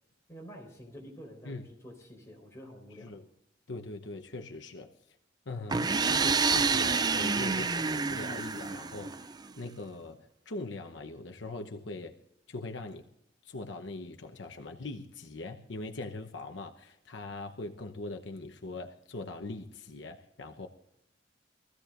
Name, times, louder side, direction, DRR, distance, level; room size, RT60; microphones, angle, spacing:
voice 1, 0.3-3.2, equal, 15° left, -1 dB, 4.3 m, -48 dB
voice 2, 3.7-4.9 5.5-12.2 12.5-13.0 13.4-20.7, left 2 dB, 75° left, 4 dB, 1.0 m, -41 dB
sound 1, 5.7-9.5, right 4 dB, 20° right, 0.4 m, -28 dB
23.5 x 15.0 x 2.5 m, 0.81 s
head